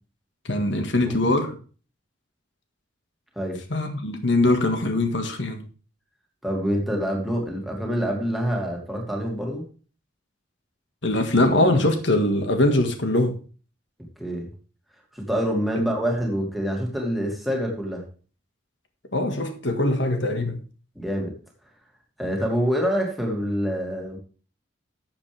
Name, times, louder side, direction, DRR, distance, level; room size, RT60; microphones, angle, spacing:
voice 1, 0.5-1.6 3.7-5.6 11.0-13.4 19.1-20.6, left 1 dB, 65° left, 1.8 m, -22 dB
voice 2, 6.4-9.6 14.2-14.5 15.1-18.0 21.0-21.3 22.2-24.2, equal, ahead, 2.5 m, -26 dB
12.0 x 7.6 x 3.5 m
head